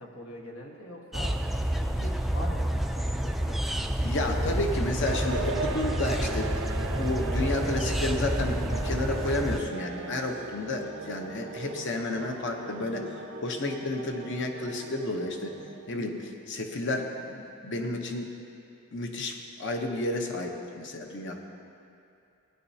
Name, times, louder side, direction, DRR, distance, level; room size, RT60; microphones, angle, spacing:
voice 1, 0.0-1.4 1.8-2.0 2.3-3.9 4.3-4.5, left 1 dB, 80° left, -1 dB, 1.4 m, -43 dB
sound 1, 1.1-9.6, right 1 dB, ahead, 0.3 m, -29 dB
voice 2, 1.8-2.2 4.0-13.0 13.4-15.5 15.9-18.3 18.9-21.4, left 2 dB, 60° left, 3 dB, 0.9 m, -31 dB
sound 2, 5.0-16.3, right 4 dB, 60° right, 0.5 m, -39 dB
sound 3, 5.4-12.0, left 2 dB, 40° left, 1.6 m, -47 dB
16.5 x 9.6 x 2.8 m, 2.6 s
head